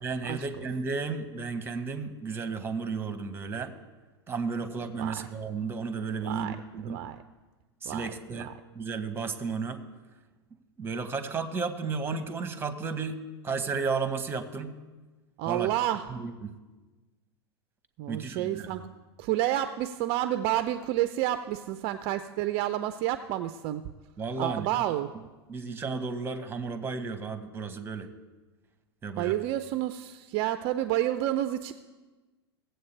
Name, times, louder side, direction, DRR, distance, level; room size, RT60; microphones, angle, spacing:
voice 1, 0.0-3.7 4.3-7.0 7.8-9.8 10.8-14.7 15.5-15.7 16.1-16.5 18.1-18.8 24.2-24.8 25.5-28.1 29.0-29.4, right 4 dB, 15° right, 10 dB, 1.0 m, -33 dB
voice 2, 6.2-6.6 6.9-7.2 7.9-8.1 8.3-8.5 15.4-16.1 18.0-18.8 19.2-23.8 24.4-25.1 29.2-31.7, right 13 dB, 45° right, 11 dB, 0.5 m, -29 dB
17.5 x 7.8 x 3.3 m, 1.2 s
hypercardioid pair, 105°, 14 cm